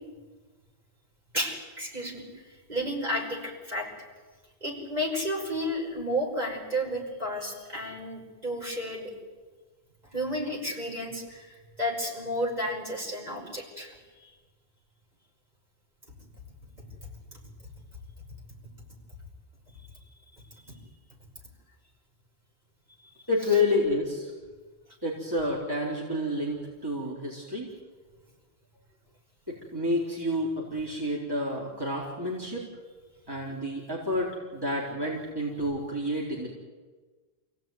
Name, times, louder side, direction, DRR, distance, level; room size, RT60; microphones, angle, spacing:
voice 1, 1.3-3.9 4.6-9.1 10.1-14.3 17.3-17.4, equal, 45° right, -1 dB, 5.8 m, -32 dB
voice 2, 23.3-24.3 25.0-27.7 29.5-32.6 33.3-36.5, left 1 dB, 20° right, -4 dB, 4.2 m, -29 dB
28.0 x 17.0 x 9.4 m, 1.4 s
omnidirectional pair, 1.0 m